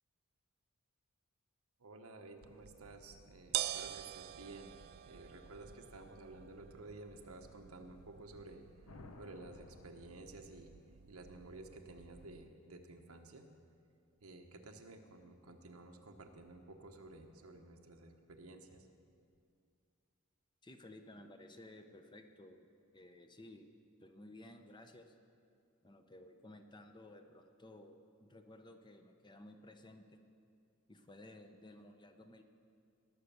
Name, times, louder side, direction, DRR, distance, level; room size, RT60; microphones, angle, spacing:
voice 1, 1.8-4.7 5.0-10.7 11.1-13.5 14.2-18.9, right 2 dB, 90° right, 4 dB, 1.1 m, -53 dB
sound 1, 2.4-12.5, right 12 dB, 45° right, 0.3 m, -47 dB
sound 2, 8.9-11.0, left 2 dB, 75° left, 0.8 m, -56 dB
voice 2, 20.6-22.7 22.9-23.7 24.0-25.1 25.8-30.2 30.9-32.4, left 1 dB, 20° left, 6 dB, 0.8 m, -56 dB
19.0 x 6.4 x 6.9 m, 2.3 s
head